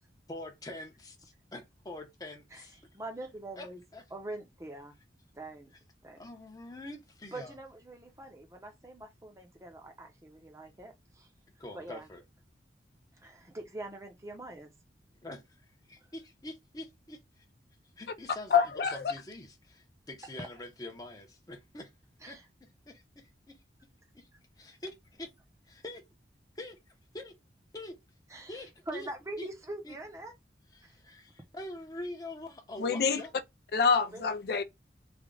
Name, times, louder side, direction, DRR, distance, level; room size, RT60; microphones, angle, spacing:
voice 1, 0.3-2.8 3.6-4.0 6.2-7.5 11.6-12.2 15.2-17.4 18.0-21.9 22.3-23.6 24.1-24.3 24.6-25.3 25.6-26.1 26.5-27.4 27.7-28.0 28.5-29.1 29.4-29.5 29.8-30.0 30.7-33.3, left 1 dB, 20° left, 0.7 m, -45 dB
voice 2, 2.9-3.8 4.1-5.0 5.3-5.7 6.0-6.2 7.3-11.3 11.7-12.1 13.2-14.7 20.4-20.5 22.2-22.4 28.3-30.3 30.8-30.9 34.0-34.2, right 2 dB, 15° right, 0.7 m, -43 dB
voice 3, 18.5-19.1 32.8-33.2 33.7-34.6, left 6 dB, 60° left, 0.4 m, -26 dB
3.3 x 2.2 x 3.8 m
head